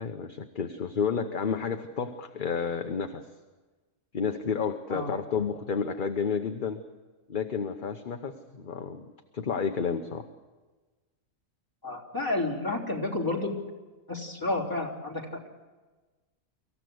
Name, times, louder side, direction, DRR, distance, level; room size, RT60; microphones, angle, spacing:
voice 1, 0.0-3.2 4.1-6.8 7.3-9.0 9.3-10.2, left 6 dB, 40° left, 6 dB, 1.0 m, -31 dB
voice 2, 11.8-13.5 14.1-15.2, left 2 dB, 15° left, -1 dB, 3.5 m, -30 dB
25.0 x 15.0 x 7.9 m, 1.3 s
omnidirectional pair, 1.4 m